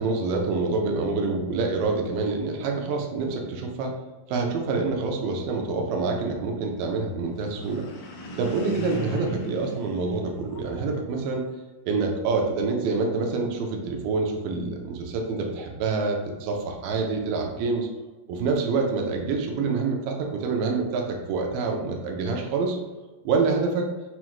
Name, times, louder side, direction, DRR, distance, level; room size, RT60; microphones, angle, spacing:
voice 1, 0.0-3.9 4.3-7.9 8.4-11.4 11.9-17.9 18.3-22.8 23.3-23.9, right 4 dB, 90° right, 2 dB, 2.3 m, -26 dB
sound 1, 7.3-10.9, left 1 dB, 85° left, 1.5 m, -37 dB
5.7 x 2.1 x 3.0 m, 1.2 s
omnidirectional pair, 3.8 m